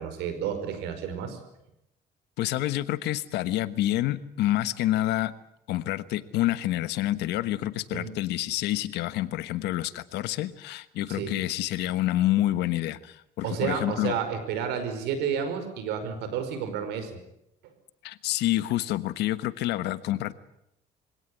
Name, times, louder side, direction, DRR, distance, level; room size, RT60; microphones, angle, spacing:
voice 1, 0.0-1.4 7.9-8.1 11.1-11.3 13.4-17.2, right 7 dB, 90° right, 9 dB, 5.3 m, -31 dB
voice 2, 2.4-5.3 5.7-14.1 18.0-20.3, left 14 dB, 85° left, 14 dB, 1.3 m, -28 dB
24.0 x 17.5 x 9.9 m, 0.81 s
cardioid pair, 110°, 17 cm